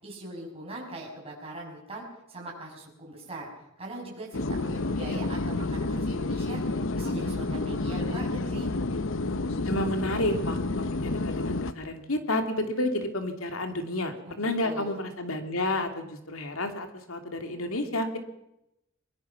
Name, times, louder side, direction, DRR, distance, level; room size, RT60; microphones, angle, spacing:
voice 1, 0.0-3.5 3.8-6.6 6.9-8.7 14.3-14.9, right 1 dB, 30° right, -3 dB, 6.3 m, -41 dB
sound 1, 4.3-11.7, left 2 dB, 65° left, 0.9 m, -30 dB
voice 2, 9.6-18.2, left 1 dB, 85° left, 6 dB, 2.9 m, -30 dB
22.5 x 22.0 x 6.0 m, 0.86 s
head